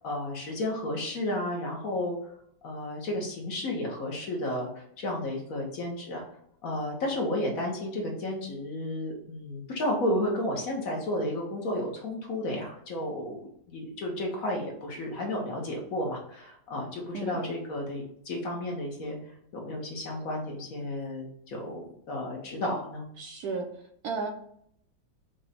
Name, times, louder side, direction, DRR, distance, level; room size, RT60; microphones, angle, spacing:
voice 1, 0.0-2.3 2.6-6.2 6.6-19.2 19.5-23.0, left 1 dB, 55° left, 0 dB, 1.2 m, -32 dB
voice 2, 23.2-23.7 24.0-24.3, right 4 dB, 70° right, 3 dB, 1.0 m, -33 dB
5.0 x 2.2 x 4.1 m, 0.69 s
omnidirectional pair, 2.0 m